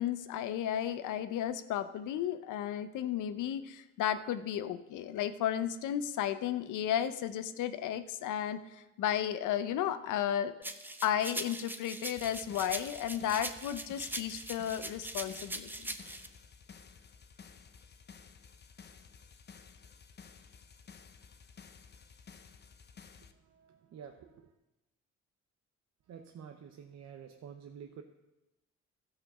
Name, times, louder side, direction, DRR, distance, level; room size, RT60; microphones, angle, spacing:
voice 1, 0.0-10.5 11.0-15.9, left 10 dB, 85° left, 12 dB, 0.7 m, -34 dB
sound 1, 10.6-16.3, right 1 dB, 5° right, 0.7 m, -41 dB
sound 2, 12.2-23.3, left 6 dB, 35° left, 0.8 m, -55 dB
voice 2, 23.2-24.6 26.1-28.0, right 7 dB, 60° right, 5 dB, 0.8 m, -50 dB
13.0 x 5.1 x 6.7 m, 1.0 s
cardioid pair, 90°, 30 cm